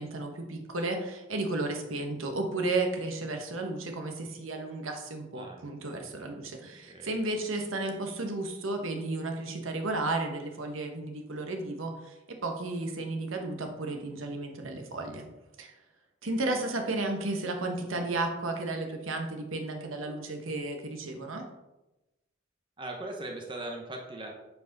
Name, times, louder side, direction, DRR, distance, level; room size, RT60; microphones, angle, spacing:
voice 1, 0.0-15.2 15.6-15.7 16.2-21.4, right 2 dB, 85° right, 4 dB, 1.1 m, -33 dB
voice 2, 22.8-24.3, right 1 dB, 25° right, 1 dB, 0.9 m, -39 dB
8.2 x 4.7 x 4.0 m, 1.0 s
head